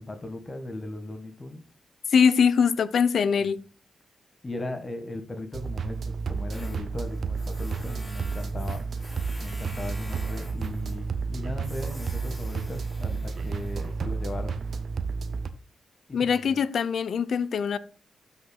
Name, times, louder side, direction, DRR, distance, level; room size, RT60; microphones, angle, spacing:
voice 1, 0.0-1.6 3.4-3.5 4.4-8.8 9.4-14.6 16.1-16.6, left 2 dB, 30° left, 1.6 m, -37 dB
voice 2, 2.1-3.6 16.1-17.8, left 6 dB, 70° left, 0.5 m, -22 dB
sound 1, 5.5-15.5, right 5 dB, 65° right, 0.7 m, -31 dB
Tools, 6.5-14.8, left 1 dB, 15° left, 4.5 m, -48 dB
12.5 x 5.8 x 2.3 m
supercardioid pair, 45°, 0 cm